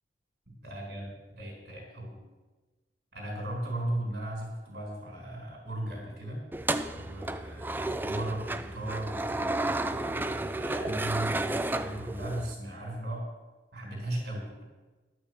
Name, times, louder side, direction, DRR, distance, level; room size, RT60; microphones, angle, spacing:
voice 1, 0.6-2.2 3.1-6.4 6.9-13.3 13.7-14.6, right 1 dB, 65° right, -2 dB, 3.6 m, -37 dB
sound 1, 6.5-12.5, right 2 dB, 10° right, 0.4 m, -32 dB
11.5 x 6.2 x 7.8 m, 1.2 s
head